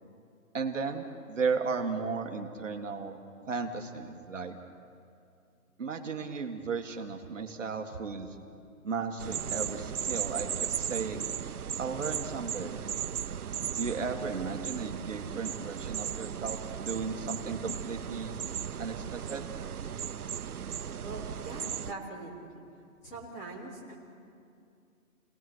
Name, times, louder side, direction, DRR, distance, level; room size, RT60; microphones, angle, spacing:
voice 1, 0.5-3.2 3.5-4.5 5.8-8.3 8.8-11.3 11.8-12.8 13.8-18.3 18.8-19.5, right 5 dB, 60° right, 3 dB, 1.9 m, -35 dB
sound 1, 9.2-21.9, right 8 dB, 85° right, 0.9 m, -36 dB
voice 2, 21.0-22.6 23.0-23.9, right 2 dB, 10° left, -5 dB, 3.6 m, -42 dB
30.0 x 19.0 x 6.3 m, 2.5 s
hypercardioid pair, 180°, 43 cm